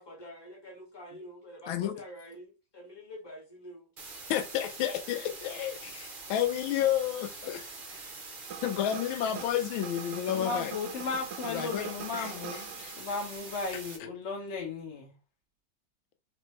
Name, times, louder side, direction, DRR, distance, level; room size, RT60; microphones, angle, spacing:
voice 1, 0.0-3.9, equal, 15° left, 1.5 m, -47 dB
sound 1, 4.0-14.0, right 3 dB, 45° right, 0.7 m, -44 dB
voice 2, 4.3-8.0 8.6-10.7 11.5-11.9 12.2-12.9, left 11 dB, 85° left, 1.4 m, -31 dB
sound 2, 8.5-13.3, right 8 dB, 70° right, 1.0 m, -44 dB
voice 3, 10.3-12.7 13.0-15.1, left 4 dB, 45° left, 1.0 m, -35 dB
4.1 x 3.2 x 3.0 m
omnidirectional pair, 2.2 m